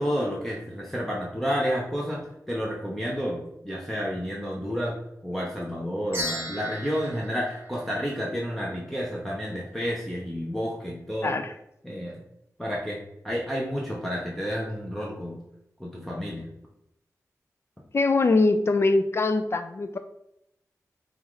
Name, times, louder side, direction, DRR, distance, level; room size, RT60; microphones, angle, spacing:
voice 1, 0.0-4.9 5.2-11.3 11.8-12.2 12.6-13.0 13.2-15.4 15.8-16.4, equal, 5° left, -4 dB, 0.7 m, -30 dB
sound 1, 6.1-8.6, equal, 40° right, 1.1 m, -36 dB
voice 2, 11.2-11.5 17.9-20.0, left 3 dB, 45° left, 9 dB, 0.3 m, -22 dB
5.4 x 2.5 x 3.1 m, 0.80 s
wide cardioid pair, 80°, 6 cm